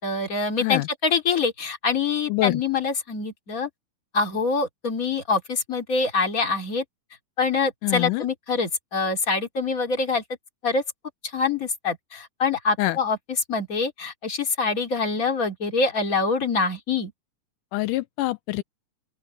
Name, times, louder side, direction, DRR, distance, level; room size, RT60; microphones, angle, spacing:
voice 1, 0.0-3.7 4.1-6.8 7.4-10.2 10.6-10.8 11.3-13.2 13.5-17.1, left 4 dB, 25° left, 3.2 m, -25 dB
voice 2, 2.3-2.6 7.8-8.2 12.8-13.0 17.7-18.6, left 18 dB, 85° left, 2.3 m, -25 dB
open air
omnidirectional pair, 3.6 m